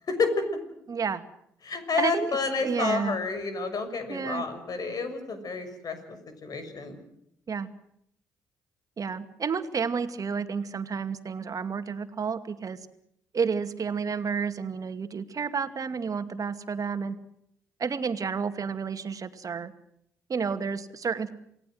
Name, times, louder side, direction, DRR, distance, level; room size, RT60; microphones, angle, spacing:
voice 1, 0.1-0.5 1.6-7.0, left 4 dB, 55° left, 9 dB, 6.5 m, -30 dB
voice 2, 0.9-1.2 2.0-2.3 2.6-3.2 4.1-4.4 7.5-7.7 9.0-12.8 13.3-17.2 17.8-19.7 20.3-21.3, right 5 dB, 50° right, 10 dB, 2.4 m, -30 dB
29.0 x 18.5 x 7.9 m, 0.75 s
hypercardioid pair, 45°, 8 cm